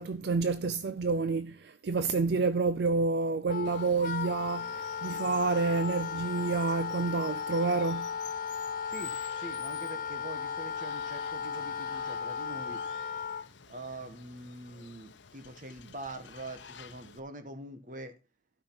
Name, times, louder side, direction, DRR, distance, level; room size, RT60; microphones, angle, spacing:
voice 1, 0.0-8.1, right 4 dB, 60° right, 0.4 m, -29 dB
Wind instrument woodwind instrument, 3.5-13.5, left 6 dB, 45° left, 0.7 m, -36 dB
Water, 3.6-17.2, left 7 dB, 75° left, 0.9 m, -51 dB
voice 2, 8.8-12.8 13.7-18.1, right 2 dB, 40° right, 1.5 m, -44 dB
12.5 x 5.6 x 5.8 m
head